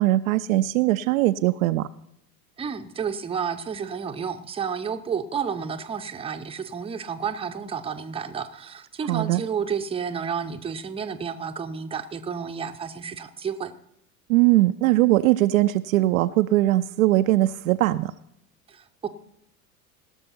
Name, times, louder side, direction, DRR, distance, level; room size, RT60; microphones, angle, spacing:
voice 1, 0.0-1.9 9.1-9.4 14.3-18.1, right 16 dB, 60° right, 11 dB, 0.5 m, -20 dB
voice 2, 2.6-13.7 18.7-19.1, right 6 dB, 10° right, 7 dB, 0.7 m, -31 dB
17.5 x 6.6 x 5.6 m, 0.76 s
figure-of-eight pair, 75°, 47 cm